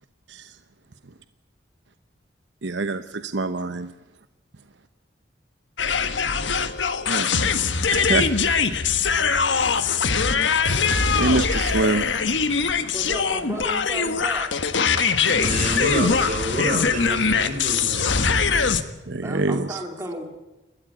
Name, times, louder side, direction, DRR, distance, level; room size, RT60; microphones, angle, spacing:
voice 1, 2.6-3.9 7.1-7.5 7.9-8.3 11.1-12.1 15.5-16.3 17.9-18.2 19.1-19.8, right 3 dB, 70° right, 11 dB, 0.9 m, -26 dB
sound 1, 5.8-18.8, left 5 dB, 80° left, 1.4 m, -22 dB
voice 2, 12.9-14.5 19.2-20.2, right 1 dB, 15° right, 2 dB, 3.2 m, -33 dB
voice 3, 15.3-18.4, right 1 dB, 45° right, 4 dB, 5.3 m, -28 dB
29.0 x 13.5 x 8.5 m, 1.0 s
head